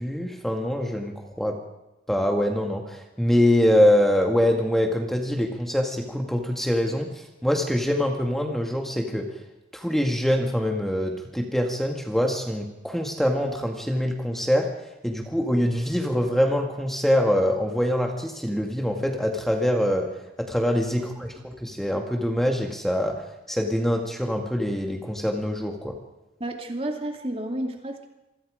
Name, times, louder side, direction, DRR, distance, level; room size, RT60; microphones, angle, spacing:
voice 1, 0.0-1.6 2.1-9.4 9.7-14.7 15.0-20.1 20.4-26.0, equal, ahead, 2 dB, 2.0 m, -24 dB
voice 2, 26.4-28.1, right 1 dB, 30° right, 3 dB, 2.5 m, -31 dB
27.0 x 24.0 x 5.1 m, 0.99 s
head